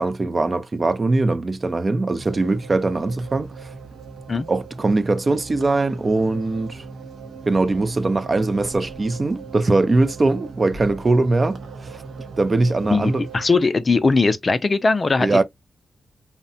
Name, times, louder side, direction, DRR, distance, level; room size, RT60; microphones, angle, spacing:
voice 1, 0.0-3.7 4.5-6.8 7.5-12.0 12.4-13.2 15.2-15.4, right 2 dB, 40° right, 0.3 m, -21 dB
sound 1, 2.2-13.6, right 4 dB, 85° right, 0.6 m, -39 dB
voice 2, 12.9-15.4, left 3 dB, 45° left, 0.4 m, -19 dB
2.7 x 2.1 x 2.6 m
cardioid pair, 55°, 0 cm